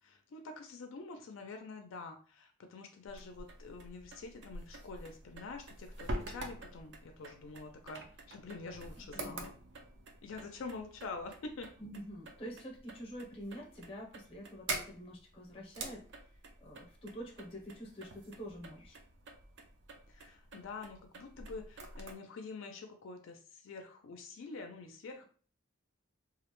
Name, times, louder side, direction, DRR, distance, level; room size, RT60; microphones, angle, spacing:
voice 1, 0.0-9.5 10.2-11.7 20.1-25.2, left 3 dB, 75° left, 4 dB, 0.4 m, -46 dB
sound 1, 3.1-22.1, right 2 dB, 55° right, 0.4 m, -47 dB
voice 2, 9.0-9.5 11.8-19.0, equal, 30° left, 0 dB, 0.6 m, -47 dB
2.4 x 2.1 x 2.9 m, 0.42 s
head